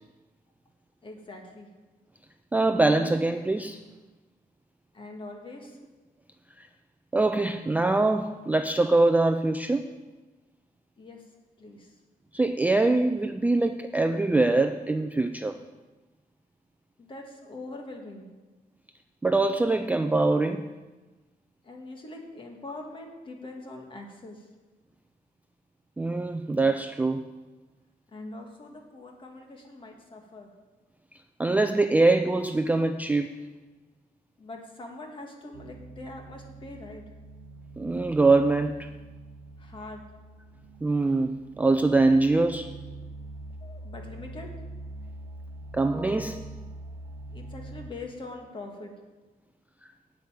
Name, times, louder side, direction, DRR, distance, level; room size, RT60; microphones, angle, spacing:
voice 1, 1.0-1.7 4.9-5.8 11.0-11.2 11.6-11.9 17.0-18.3 21.6-24.5 28.1-30.5 34.4-37.0 39.6-40.0 43.6-44.5 47.3-48.9, left 2 dB, 30° left, 2 dB, 1.6 m, -43 dB
voice 2, 2.5-3.8 6.6-6.7 7.1-9.9 12.3-15.6 19.2-20.7 26.0-27.2 31.4-33.4 37.8-38.9 40.8-42.7 45.7-46.5, right 2 dB, 10° right, 8 dB, 0.3 m, -23 dB
sound 1, 35.5-47.9, right 2 dB, 70° right, 0.8 m, -44 dB
12.0 x 5.3 x 8.9 m, 1.2 s
wide cardioid pair, 170°, 16 cm